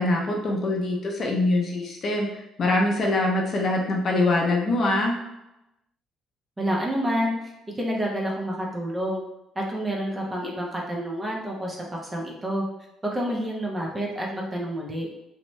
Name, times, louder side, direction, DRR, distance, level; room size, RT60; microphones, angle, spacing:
voice 1, 0.0-2.3 2.6-5.2, left 2 dB, 40° left, 0 dB, 0.5 m, -23 dB
voice 2, 6.6-7.5 7.8-9.2 9.6-11.8 12.1-12.7 13.1-15.1, equal, 15° right, -2 dB, 0.5 m, -28 dB
2.6 x 2.1 x 3.0 m, 0.91 s
cardioid pair, 145°, 0 cm